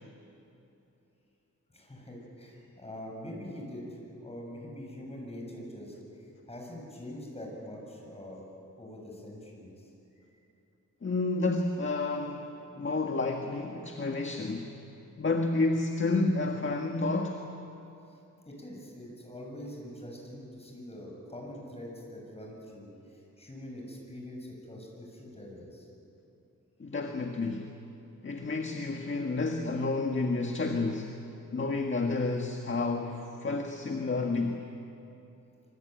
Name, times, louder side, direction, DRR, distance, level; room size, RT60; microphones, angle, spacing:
voice 1, 1.7-8.4 8.8-10.4 18.1-18.2 18.4-25.9, left 1 dB, 20° left, -1 dB, 7.4 m, -44 dB
voice 2, 11.0-14.7 15.2-17.4 26.8-27.7 28.2-31.1 31.5-34.6, left 3 dB, 40° left, 3 dB, 1.7 m, -30 dB
26.5 x 24.0 x 9.3 m, 2.8 s
wide cardioid pair, 135°, 31 cm